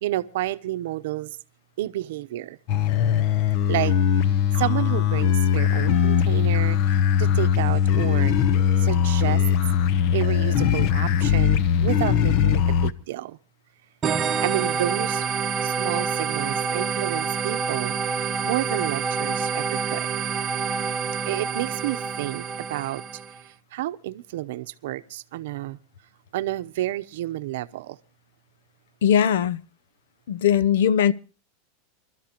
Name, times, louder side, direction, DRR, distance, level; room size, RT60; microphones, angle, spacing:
voice 1, 0.0-1.4 1.8-2.6 3.7-3.9 4.6-8.4 8.8-9.4 10.1-13.4 14.4-15.2 15.6-18.0 18.4-20.1 21.2-23.0 23.5-25.8 26.3-28.0, right 15 dB, 65° right, 0.8 m, -30 dB
sound 1, 2.7-12.9, left 9 dB, 45° left, 0.7 m, -20 dB
sound 2, 14.0-23.4, right 5 dB, 15° right, 1.0 m, -27 dB
voice 2, 29.0-29.6 30.3-31.1, left 9 dB, 80° left, 0.6 m, -19 dB
26.5 x 12.5 x 2.9 m
supercardioid pair, 165°, 0 cm